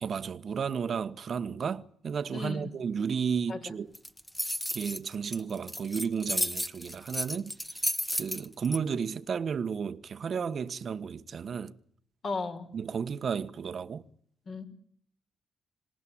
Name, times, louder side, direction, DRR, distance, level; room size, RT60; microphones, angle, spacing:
voice 1, 0.0-3.9 4.7-11.7 12.7-14.0, right 6 dB, 50° right, 1.4 m, -33 dB
voice 2, 2.3-2.7 3.5-3.6 12.2-12.7 14.5-14.7, left 3 dB, 50° left, 5.2 m, -34 dB
sound 1, 4.0-8.8, equal, 5° left, 1.4 m, -32 dB
26.5 x 19.0 x 8.8 m
cardioid pair, 90°, 0 cm